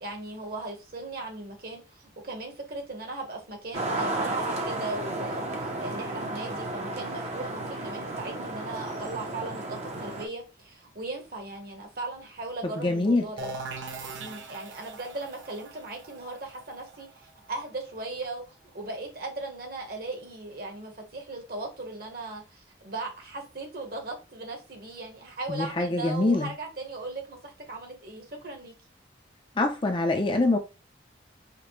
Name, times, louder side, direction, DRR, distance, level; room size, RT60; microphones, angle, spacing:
voice 1, 0.0-13.5 14.2-28.7, right 2 dB, 50° right, 1.1 m, -38 dB
sound 1, 3.7-10.3, right 2 dB, 35° right, 0.7 m, -33 dB
voice 2, 12.8-13.3 25.5-26.5 29.6-30.6, left 2 dB, 25° left, 0.5 m, -24 dB
sound 2, 13.4-19.0, right 3 dB, 90° right, 0.6 m, -41 dB
5.0 x 2.1 x 2.9 m
head